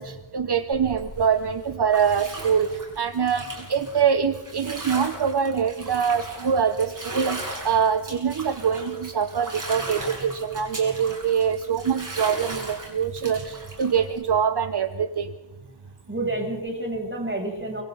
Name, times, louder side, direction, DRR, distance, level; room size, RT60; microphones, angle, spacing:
voice 1, 0.0-2.7 3.0-15.3, right 7 dB, 65° right, 9 dB, 1.1 m, -24 dB
Bathtub (filling or washing), 0.7-14.2, right 2 dB, 45° right, 7.6 m, -38 dB
voice 2, 15.8-17.8, right 2 dB, 25° right, 0 dB, 7.9 m, -30 dB
28.0 x 26.0 x 4.1 m, 1.1 s
wide cardioid pair, 80°, 43 cm